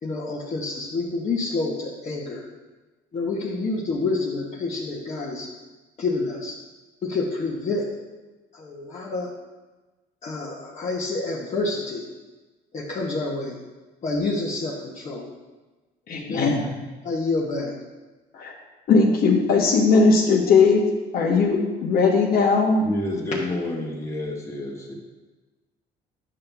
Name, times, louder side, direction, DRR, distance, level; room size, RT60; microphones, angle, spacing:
voice 1, 0.0-2.5 3.1-5.5 6.0-6.6 7.0-7.9 8.5-9.3 10.2-12.1 12.7-13.6 14.0-15.3 16.1-16.5 17.0-17.7, left 3 dB, 45° left, -4 dB, 1.2 m, -28 dB
voice 2, 16.1-16.9 18.3-18.5 18.9-20.9 21.1-22.8, left 4 dB, 60° left, -1 dB, 1.3 m, -19 dB
voice 3, 22.8-24.9, left 1 dB, 15° left, -2 dB, 1.7 m, -29 dB
9.8 x 5.8 x 3.5 m, 1.2 s
cardioid pair, 110°, 17 cm